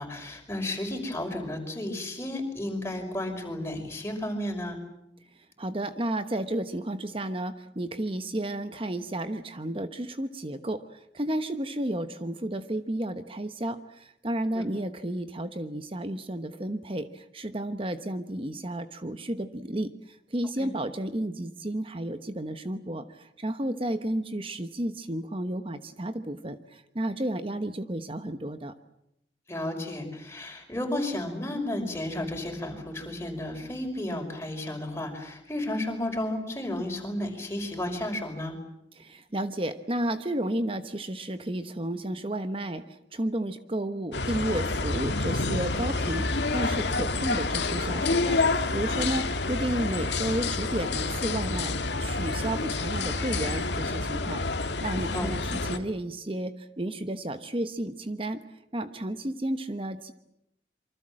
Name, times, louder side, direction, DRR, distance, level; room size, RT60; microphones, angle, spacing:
voice 1, 0.0-4.8 14.5-14.6 20.6-20.7 29.5-38.5 55.1-55.3, left 1 dB, 15° left, 2 dB, 5.6 m, -33 dB
voice 2, 5.4-28.7 39.0-51.7 52.0-55.4 55.7-58.4 58.7-60.1, right 1 dB, 30° right, 9 dB, 1.1 m, -32 dB
sound 1, 44.1-55.8, left 3 dB, 75° left, 1.9 m, -28 dB
27.0 x 24.5 x 7.7 m, 0.83 s
head